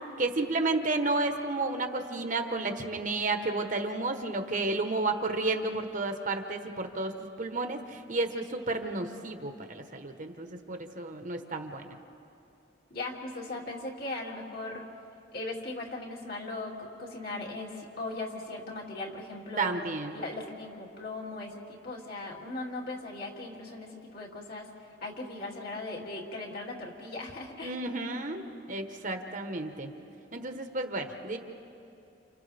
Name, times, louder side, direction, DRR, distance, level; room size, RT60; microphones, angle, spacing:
voice 1, 0.2-12.0 19.6-20.1 27.6-29.9 30.3-31.4, right 2 dB, 45° right, 5 dB, 1.3 m, -32 dB
voice 2, 12.9-14.8 15.3-19.8 20.1-27.7, left 2 dB, 55° left, -2 dB, 2.7 m, -38 dB
30.0 x 29.0 x 3.5 m, 2.7 s
head